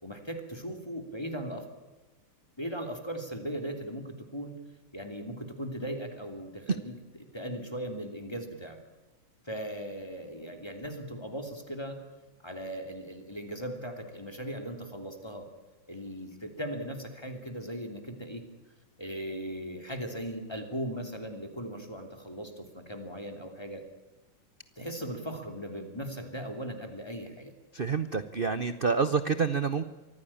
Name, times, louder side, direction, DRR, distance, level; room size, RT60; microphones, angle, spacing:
voice 1, 0.0-1.6 2.6-4.6 4.9-7.0 7.3-8.8 9.4-12.0 12.4-15.5 15.9-18.4 19.0-23.8 24.8-27.5, equal, 10° left, 6 dB, 2.9 m, -38 dB
voice 2, 27.7-29.8, right 5 dB, 65° right, 13 dB, 0.5 m, -28 dB
24.5 x 15.5 x 8.7 m, 1.2 s
omnidirectional pair, 2.3 m